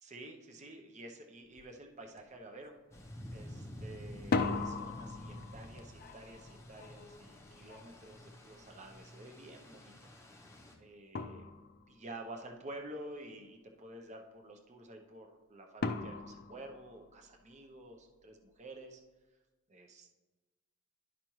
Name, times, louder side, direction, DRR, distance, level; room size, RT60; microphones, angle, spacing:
voice 1, 0.0-2.7 3.3-10.1 10.4-10.5 10.8-11.5 11.9-19.0 19.7-20.2, right 1 dB, 30° right, 3 dB, 0.7 m, -50 dB
sound 1, 1.6-1.7 2.1-2.6 4.1-9.0 10.6-10.7 11.2-12.1 15.8-17.5, left 3 dB, 40° left, 0.4 m, -39 dB
sound 2, 2.9-10.7, left 1 dB, 15° left, 0.7 m, -49 dB
11.5 x 5.1 x 3.0 m, 1.2 s
head